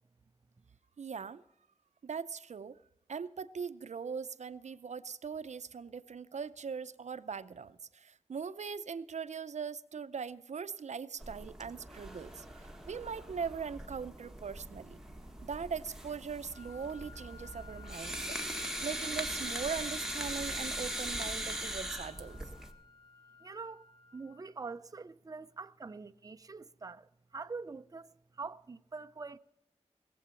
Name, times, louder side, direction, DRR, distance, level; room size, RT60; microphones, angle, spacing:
voice 1, 1.0-1.4 2.0-2.8 3.1-15.0 15.4-18.4 18.8-22.4, right 6 dB, 80° right, 0.6 m, -40 dB
sound 1, 11.2-22.7, right 1 dB, 5° right, 1.6 m, -40 dB
sound 2, 16.5-24.5, left 4 dB, 45° left, 1.6 m, -53 dB
voice 2, 23.4-23.8 24.1-29.4, right 4 dB, 30° right, 0.5 m, -44 dB
19.5 x 7.8 x 7.0 m
wide cardioid pair, 95°, 12 cm